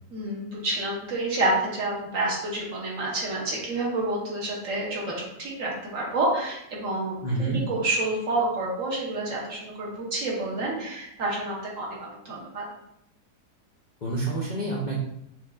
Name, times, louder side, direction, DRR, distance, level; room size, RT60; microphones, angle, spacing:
voice 1, 0.1-12.6, right 2 dB, 55° right, -4 dB, 1.2 m, -29 dB
voice 2, 7.2-7.6 14.0-15.0, right 2 dB, 85° left, -5 dB, 0.4 m, -28 dB
5.8 x 2.6 x 2.3 m, 0.79 s
omnidirectional pair, 1.8 m